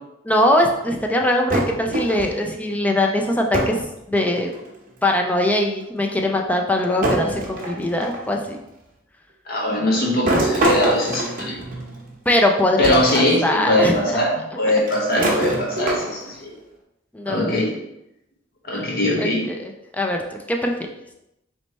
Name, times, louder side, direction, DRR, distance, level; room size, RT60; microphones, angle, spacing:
voice 1, 0.2-4.5 5.0-8.6 12.3-14.2 17.1-17.6 19.2-19.7 20.0-20.2 20.5-20.7, left 1 dB, 10° left, 2 dB, 0.4 m, -21 dB
sound 1, 1.5-2.5 3.5-3.9 4.2-4.8 5.8-5.9 7.0-8.3 10.3-12.1 12.8-13.2 13.6-13.7 14.9-16.3, right 1 dB, 45° right, 1.0 m, -24 dB
voice 2, 9.5-11.6 12.8-16.5 17.3-17.8 18.6-19.5, left 1 dB, 50° left, -2 dB, 1.1 m, -21 dB
3.3 x 3.1 x 4.1 m, 0.87 s
head